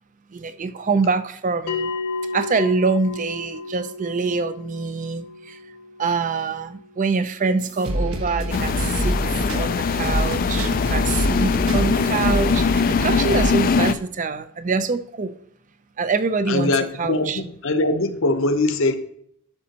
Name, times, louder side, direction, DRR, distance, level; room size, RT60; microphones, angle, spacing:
voice 1, 0.3-1.9 2.3-5.6 6.0-9.2 9.5-15.3 16.0-16.7 17.0-17.4, right 4 dB, 35° right, 0.5 m, -25 dB
Bell, 1.7-6.7, left 3 dB, 85° left, 1.4 m, -32 dB
sound 1, 7.6-13.5, equal, 70° right, 1.3 m, -26 dB
sound 2, 8.5-13.9, left 5 dB, 40° left, 0.3 m, -22 dB
voice 2, 16.5-19.0, left 2 dB, 60° left, 0.8 m, -22 dB
11.5 x 6.2 x 2.9 m
head